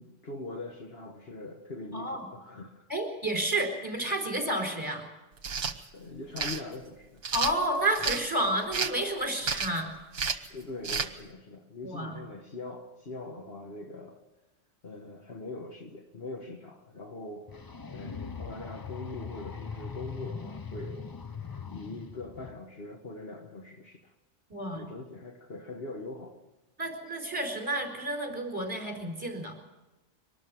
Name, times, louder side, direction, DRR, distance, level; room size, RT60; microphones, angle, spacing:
voice 1, 0.0-2.9 5.9-7.2 10.5-14.2 14.8-17.6 17.9-21.1 21.7-24.1 24.7-26.4, left 2 dB, 55° left, 4 dB, 1.7 m, -42 dB
voice 2, 1.9-2.2 2.9-5.1 7.3-9.9 11.8-12.1 24.5-24.8 26.8-29.5, right 1 dB, 15° right, 2 dB, 4.4 m, -30 dB
sound 1, 5.4-5.8 6.4-6.6 7.2-8.2 8.7-9.0 9.4-9.8 10.1-10.5 10.8-11.1, right 5 dB, 55° right, 1.3 m, -30 dB
sound 2, 17.5-22.5, left 5 dB, 25° left, 0.5 m, -40 dB
23.5 x 13.0 x 9.2 m, 1.0 s
omnidirectional pair, 1.3 m